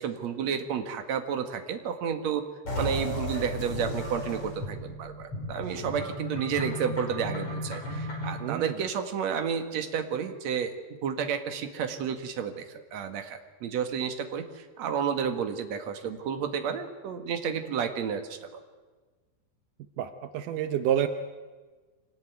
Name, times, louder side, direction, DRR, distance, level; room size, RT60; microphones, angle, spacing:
voice 1, 0.0-2.4 2.8-12.7 12.9-18.6, right 7 dB, 50° right, 6 dB, 2.3 m, -31 dB
sound 1, 2.7-8.5, left 1 dB, 35° left, 6.5 m, -34 dB
voice 2, 8.4-8.7 20.0-21.1, right 10 dB, 80° right, 9 dB, 1.8 m, -28 dB
25.0 x 19.0 x 9.4 m, 1.4 s
omnidirectional pair, 5.0 m